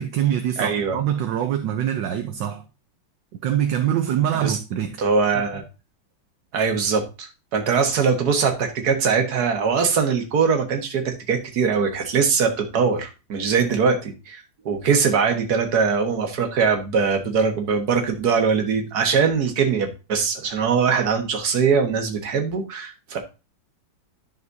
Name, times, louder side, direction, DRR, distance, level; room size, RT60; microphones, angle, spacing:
voice 1, 0.0-2.6 3.4-5.0, right 10 dB, 70° right, 1.4 m, -24 dB
voice 2, 0.6-1.0 4.4-4.6 5.0-5.6 6.5-23.2, right 5 dB, 55° right, 1.8 m, -22 dB
11.0 x 6.1 x 2.7 m
omnidirectional pair, 2.1 m